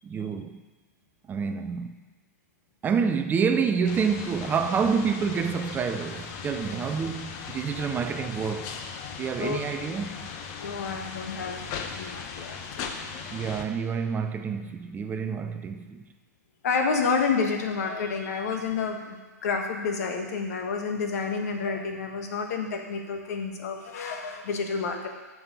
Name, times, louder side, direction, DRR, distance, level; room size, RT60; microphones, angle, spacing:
voice 1, 0.0-0.7 1.3-2.0 2.8-8.8 9.1-10.3 13.3-16.1, right 6 dB, 20° right, 0.5 m, -28 dB
sound 1, 3.9-13.6, left 6 dB, 40° left, 1.0 m, -38 dB
voice 2, 10.6-12.9 16.6-25.1, left 5 dB, 65° left, 1.6 m, -29 dB
8.8 x 6.1 x 6.7 m
hypercardioid pair, 115°, 9 cm